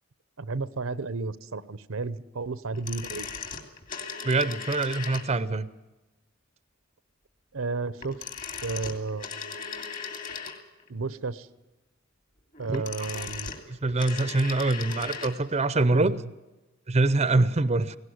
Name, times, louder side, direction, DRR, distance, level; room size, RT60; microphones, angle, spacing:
voice 1, 0.4-3.3 7.5-8.2 8.6-9.5 10.9-11.5 12.6-13.5 14.8-14.9 15.9-16.2, right 3 dB, 80° right, 17 dB, 0.8 m, -32 dB
sound 1, 2.7-5.6 8.0-10.9 12.5-15.4 15.6-15.7, left 6 dB, 40° left, 2.7 m, -38 dB
voice 2, 4.2-5.7 12.7-12.8 13.2-13.3 13.7-16.2 16.9-18.0, right 2 dB, 30° right, 16 dB, 0.6 m, -24 dB
18.0 x 17.5 x 9.4 m, 1.1 s
head